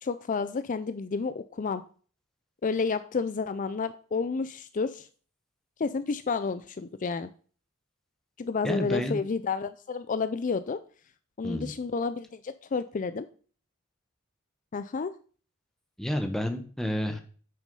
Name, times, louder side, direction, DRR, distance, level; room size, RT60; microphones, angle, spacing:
voice 1, 0.0-1.8 2.6-5.1 5.8-7.3 8.4-10.8 11.4-13.3 14.7-15.1, left 4 dB, 40° left, 12 dB, 0.4 m, -30 dB
voice 2, 8.6-9.2 11.4-11.7 16.0-17.2, equal, ahead, 6 dB, 1.2 m, -30 dB
9.3 x 6.1 x 5.4 m, 0.42 s
head